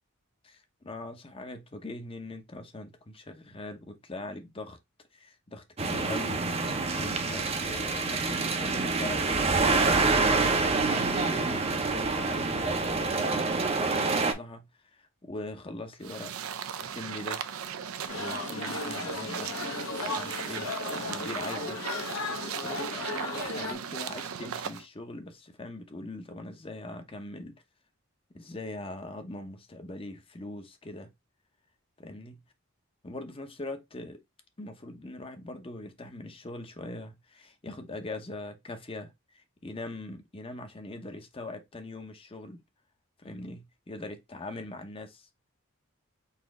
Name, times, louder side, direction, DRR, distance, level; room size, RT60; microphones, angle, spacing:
voice 1, 0.4-4.8 5.1-6.4 7.0-10.2 10.7-14.7 14.9-16.3 16.8-17.4 18.1-19.5 20.0-21.8 22.2-27.6 28.3-31.1 32.0-32.4 33.0-34.2 34.6-42.6 43.2-45.3, left 2 dB, 25° left, 0.7 m, -41 dB
sound 1, 5.8-14.3, right 3 dB, 30° right, 0.6 m, -27 dB
sound 2, 16.0-24.8, right 7 dB, 85° right, 0.5 m, -37 dB
sound 3, 18.1-23.7, left 3 dB, 75° left, 1.0 m, -36 dB
4.1 x 2.8 x 3.5 m
head